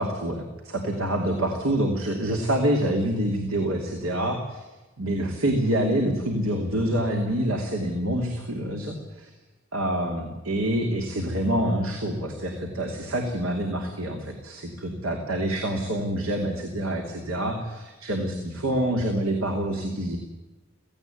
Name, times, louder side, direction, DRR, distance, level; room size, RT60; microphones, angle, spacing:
voice 1, 0.0-4.6 5.0-9.3 9.7-20.2, right 1 dB, 85° right, 3 dB, 2.8 m, -26 dB
17.5 x 16.5 x 9.2 m, 1.1 s
head